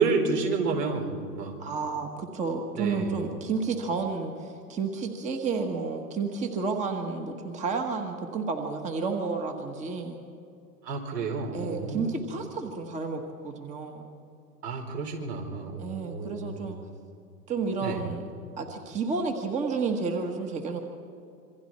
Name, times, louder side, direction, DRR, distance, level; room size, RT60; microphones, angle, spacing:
voice 1, 0.0-1.6 2.8-3.2 10.8-12.1 14.6-16.7 17.8-18.0, right 4 dB, 70° right, 2 dB, 4.8 m, -30 dB
voice 2, 1.6-10.2 11.5-14.1 15.8-16.8 17.5-18.3 18.6-20.8, right 4 dB, 15° right, 4 dB, 1.4 m, -31 dB
27.0 x 23.5 x 4.4 m, 2.5 s
hypercardioid pair, 135°, 49 cm